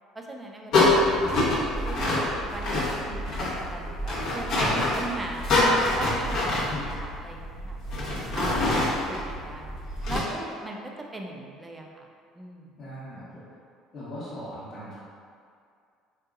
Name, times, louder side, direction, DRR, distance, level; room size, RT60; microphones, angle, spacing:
voice 1, 0.1-6.6 7.0-7.8 8.3-8.8 9.1-9.7 10.1-10.8 11.1-12.1 12.3-12.7, right 2 dB, 15° right, 1 dB, 0.5 m, -39 dB
sound 1, 0.7-10.2, left 2 dB, 70° left, 0.9 m, -26 dB
voice 2, 12.8-13.4 13.9-14.9, left 1 dB, 45° left, -11 dB, 1.1 m, -38 dB
3.7 x 2.7 x 2.4 m, 2.3 s
hypercardioid pair, 70°, 0 cm